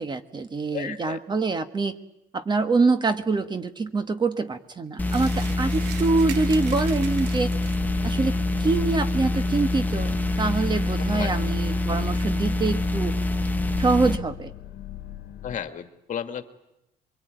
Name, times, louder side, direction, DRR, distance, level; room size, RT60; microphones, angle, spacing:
voice 1, 0.0-1.9 2.3-7.5 8.0-13.1 13.8-14.5, right 3 dB, 25° right, 9 dB, 1.5 m, -25 dB
voice 2, 0.7-1.2 11.0-11.4 15.4-16.5, left 8 dB, 50° left, 8 dB, 2.0 m, -33 dB
sound 1, 5.0-14.2, left 2 dB, 10° left, 1.4 m, -25 dB
sound 2, 5.0-8.0, right 11 dB, 90° right, 1.1 m, -41 dB
sound 3, 7.6-15.6, left 13 dB, 70° left, 1.4 m, -41 dB
24.0 x 23.5 x 9.3 m, 0.86 s
cardioid pair, 110°, 17 cm